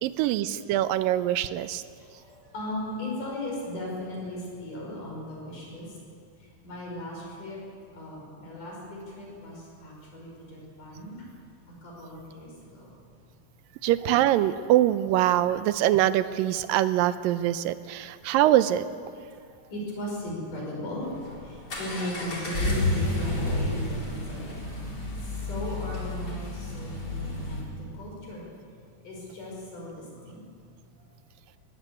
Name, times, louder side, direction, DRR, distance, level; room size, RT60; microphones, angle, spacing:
voice 1, 0.0-1.8 13.8-18.8, right 13 dB, 80° right, 13 dB, 2.3 m, -23 dB
voice 2, 1.9-6.0 6.6-7.6 7.9-11.2 11.8-12.9 19.6-24.8 25.2-28.5 29.0-30.4, left 1 dB, 60° left, -2 dB, 6.7 m, -37 dB
Accelerating revving vroom, 21.0-27.6, left 2 dB, 25° left, 4.0 m, -31 dB
20.0 x 16.0 x 8.4 m, 2.2 s
omnidirectional pair, 4.1 m